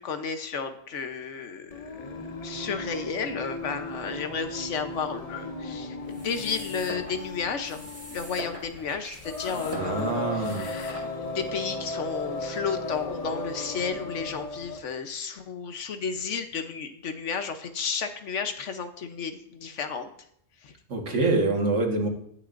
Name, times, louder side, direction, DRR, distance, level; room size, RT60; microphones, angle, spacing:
voice 1, 0.0-20.1 20.6-20.7, left 6 dB, 80° left, 8 dB, 1.3 m, -33 dB
Singing, 1.7-14.9, left 2 dB, 35° left, 0.9 m, -36 dB
sound 1, 6.0-11.5, equal, 10° right, 1.4 m, -43 dB
voice 2, 9.7-10.7 20.9-22.1, right 3 dB, 85° right, 1 dB, 1.9 m, -25 dB
18.5 x 6.5 x 2.6 m, 0.69 s
omnidirectional pair, 1.2 m